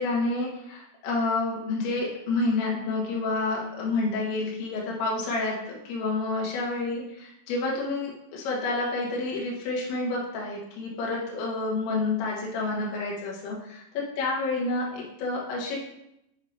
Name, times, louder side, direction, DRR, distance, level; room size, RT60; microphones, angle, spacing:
voice 1, 0.0-15.8, left 3 dB, 85° left, -4 dB, 3.5 m, -29 dB
9.2 x 4.4 x 2.6 m, 0.82 s
omnidirectional pair, 5.2 m